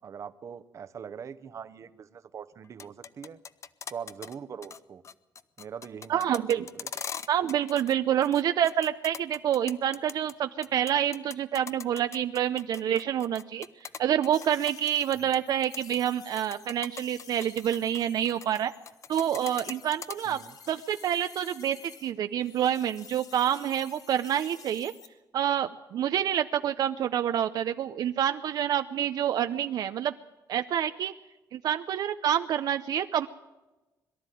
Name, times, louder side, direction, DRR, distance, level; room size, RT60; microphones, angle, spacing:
voice 1, 0.0-3.4 3.9-5.0 5.6-6.9 15.2-15.3 20.2-20.6, right 7 dB, 45° right, 13 dB, 0.9 m, -42 dB
sound 1, 2.6-4.3 4.6-4.8 5.0-7.9 8.2-10.3 10.6-15.4 15.6-16.0 16.4-18.6 18.9-20.2, left 7 dB, 45° left, 0.7 m, -40 dB
voice 2, 6.1-6.6 7.3-13.7 14.0-18.7 19.1-20.4 20.7-24.9 25.3-30.1 30.5-31.1 31.5-33.3, right 10 dB, 70° right, 9 dB, 0.6 m, -27 dB
sound 2, 14.3-22.1 22.4-25.1, left 6 dB, 60° left, 1.8 m, -51 dB
22.5 x 13.0 x 9.2 m, 1.1 s
cardioid pair, 130°, 7 cm